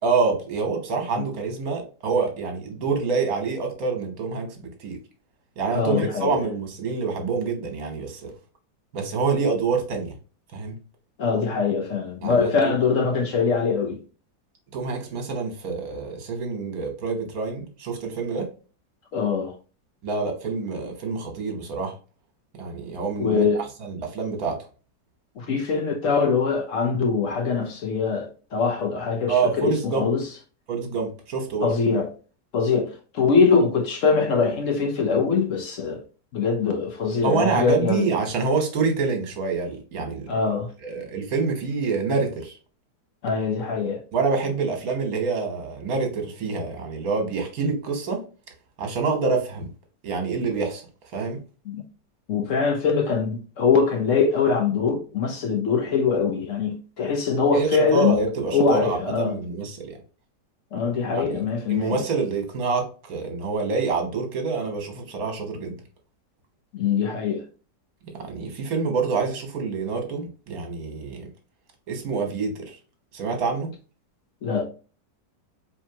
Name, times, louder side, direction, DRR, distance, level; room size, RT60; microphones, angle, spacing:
voice 1, 0.0-5.0 5.6-8.3 8.9-10.1 10.5-10.7 12.2-12.7 14.7-18.5 20.0-21.9 22.5-23.4 23.8-24.6 29.3-30.1 30.7-31.7 37.2-42.6 44.1-48.2 48.8-49.7 50.0-50.8 51.1-51.4 57.5-60.0 61.1-61.4 61.7-65.8 68.2-71.2 71.9-72.7 73.1-73.7, right 4 dB, 60° right, 1.6 m, -26 dB
voice 2, 5.7-6.4 11.2-14.0 19.1-19.5 23.2-23.6 25.4-30.3 31.6-32.1 32.5-36.0 36.3-38.1 40.3-40.7 43.2-44.0 51.7-51.8 52.3-58.2 58.5-59.4 60.7-62.0 66.7-67.4 74.4-74.7, left 5 dB, 60° left, 0.8 m, -23 dB
4.4 x 3.3 x 2.8 m
omnidirectional pair, 1.8 m